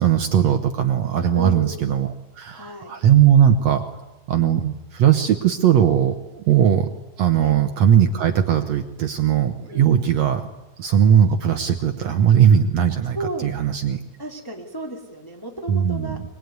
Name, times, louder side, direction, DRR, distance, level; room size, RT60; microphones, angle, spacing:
voice 1, 0.0-2.1 2.4-3.8 4.3-6.9 7.2-10.5 10.8-13.2 13.4-14.0 15.7-16.2, right 9 dB, 65° right, 7 dB, 1.7 m, -18 dB
voice 2, 1.3-1.7 2.5-2.9 7.4-7.6 9.7-10.0 13.1-13.5 14.2-16.2, right 1 dB, 5° left, 0 dB, 2.5 m, -33 dB
25.0 x 22.5 x 9.5 m, 1.0 s
omnidirectional pair, 4.4 m